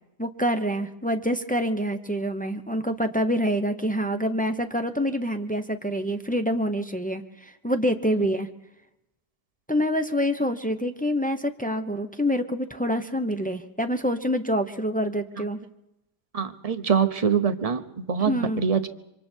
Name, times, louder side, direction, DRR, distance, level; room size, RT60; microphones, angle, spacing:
voice 1, 0.2-8.5 9.7-15.6 18.2-18.6, equal, 10° left, 6 dB, 0.5 m, -26 dB
voice 2, 16.3-18.9, right 7 dB, 30° right, 8 dB, 0.8 m, -24 dB
26.5 x 25.0 x 4.5 m, 0.87 s
omnidirectional pair, 1.8 m